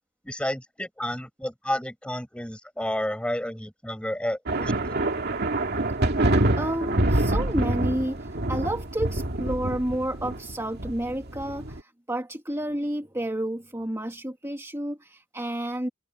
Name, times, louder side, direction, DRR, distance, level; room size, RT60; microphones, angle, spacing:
voice 1, 0.2-4.7, left 1 dB, 5° left, 6.5 m, -31 dB
sound 1, 4.5-11.8, right 1 dB, 50° right, 2.3 m, -26 dB
voice 2, 6.6-15.9, right 1 dB, 15° right, 2.2 m, -30 dB
head